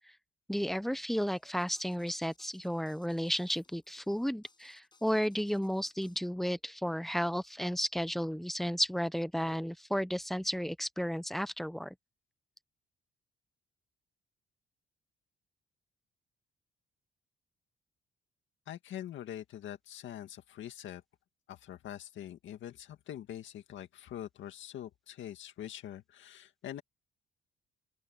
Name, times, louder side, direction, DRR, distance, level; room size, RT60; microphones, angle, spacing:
voice 1, 0.5-11.9, equal, ahead, 0.9 m, -33 dB
sound 1, 1.1-6.2, left 3 dB, 20° left, 6.4 m, -67 dB
voice 2, 18.7-21.0 21.5-26.8, left 11 dB, 75° left, 2.0 m, -44 dB
open air
cardioid pair, 90°, 20 cm